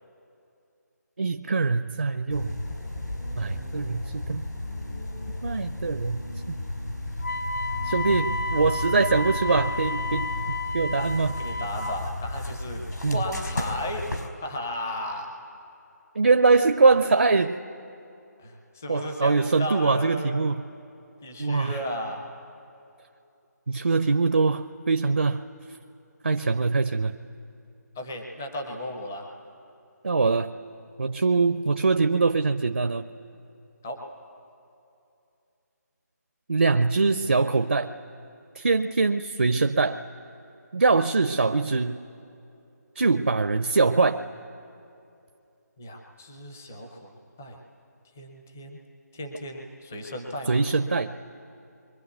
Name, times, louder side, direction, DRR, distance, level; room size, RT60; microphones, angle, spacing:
voice 1, 1.2-2.6 3.4-4.4 5.4-6.6 7.8-11.4 13.0-13.2 16.2-17.6 18.9-20.6 21.4-21.8 23.7-25.4 26.2-27.2 30.0-30.5 31.0-33.1 36.5-37.9 38.6-40.0 40.7-42.0 43.0-44.2 50.5-51.1, right 4 dB, 50° right, 9 dB, 0.5 m, -23 dB
sound 1, 2.3-14.3, left 1 dB, 80° left, 4.5 m, -34 dB
Wind instrument woodwind instrument, 7.2-12.0, left 2 dB, 60° left, 1.3 m, -32 dB
voice 2, 11.4-12.8 13.1-14.1 14.4-15.3 18.4-20.5 21.2-22.2 28.0-29.3 33.8-34.0 45.8-47.6 48.2-48.8 49.1-50.6, left 1 dB, 10° left, 2 dB, 0.5 m, -35 dB
28.0 x 23.5 x 8.2 m, 2.7 s
figure-of-eight pair, 180°, 10 cm